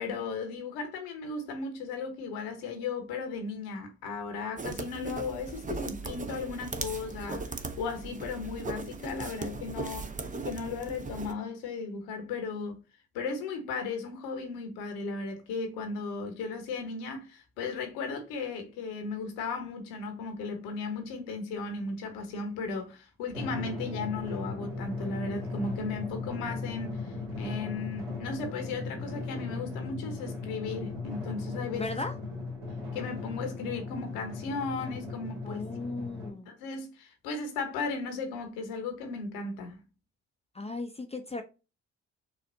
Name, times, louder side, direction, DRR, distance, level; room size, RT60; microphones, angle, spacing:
voice 1, 0.0-10.1 10.4-12.8 13.1-32.0 32.9-35.6 36.5-39.8, left 4 dB, 75° left, 1.2 m, -36 dB
sound 1, 4.6-11.3, right 3 dB, 20° right, 0.7 m, -38 dB
Drum, 23.3-36.3, left 3 dB, 65° right, 2.4 m, -37 dB
voice 2, 31.7-32.1 35.4-36.5 40.5-41.4, left 2 dB, 15° left, 0.7 m, -36 dB
6.5 x 2.5 x 2.6 m
hypercardioid pair, 50°, 36 cm